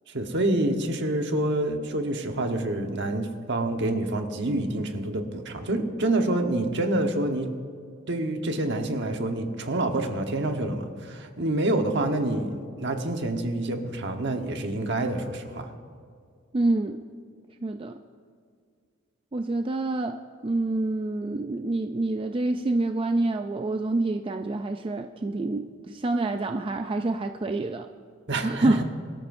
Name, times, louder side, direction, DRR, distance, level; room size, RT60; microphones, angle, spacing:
voice 1, 0.1-7.5 8.1-15.7 28.3-28.8, right 1 dB, 60° right, 4 dB, 1.2 m, -27 dB
voice 2, 16.5-17.0 17.6-18.0 19.3-27.9 28.4-28.8, right 2 dB, 25° right, 6 dB, 0.4 m, -27 dB
23.5 x 13.0 x 2.6 m, 2.2 s
head